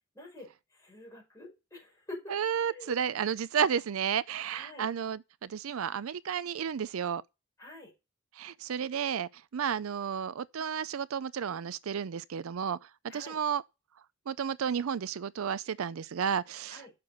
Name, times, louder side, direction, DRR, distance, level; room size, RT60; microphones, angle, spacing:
voice 1, 0.1-2.4 2.7-2.9 4.5-4.9 7.6-7.9 13.1-13.4 16.7-16.9, left 2 dB, 15° left, 5.1 m, -47 dB
voice 2, 2.3-7.2 8.4-12.8 13.1-13.6 14.3-16.8, right 7 dB, 80° right, 0.4 m, -32 dB
8.6 x 6.7 x 5.3 m
head